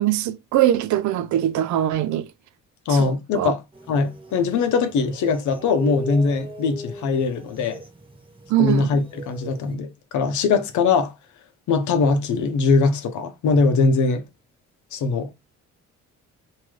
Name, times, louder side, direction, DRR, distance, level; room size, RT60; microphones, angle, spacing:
voice 1, 0.0-2.3 2.9-3.5 8.5-8.9, right 12 dB, 70° right, 0.5 m, -22 dB
voice 2, 2.9-3.6 3.9-7.8 8.6-11.1 11.7-14.3 14.9-15.3, left 4 dB, 75° left, 0.7 m, -21 dB
sound 1, 3.7-9.7, right 1 dB, 15° right, 1.1 m, -38 dB
2.7 x 2.3 x 3.1 m
cardioid pair, 90°, 30 cm